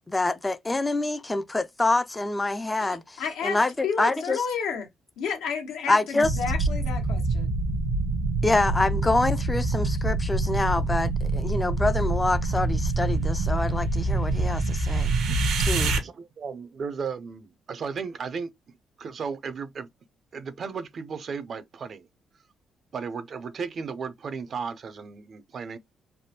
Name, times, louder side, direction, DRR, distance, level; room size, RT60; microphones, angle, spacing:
voice 1, 0.1-4.4 5.9-6.3 8.4-15.1 15.6-16.0, left 2 dB, 15° left, 0.4 m, -26 dB
voice 2, 2.8-4.9 5.2-7.5, left 6 dB, 90° left, 1.1 m, -32 dB
sound 1, 6.2-16.0, right 2 dB, 80° right, 0.8 m, -25 dB
voice 3, 15.8-18.5 19.0-19.9 20.3-22.1 22.9-25.8, right 5 dB, 50° right, 0.5 m, -35 dB
3.3 x 2.2 x 2.8 m
cardioid pair, 90°, 0 cm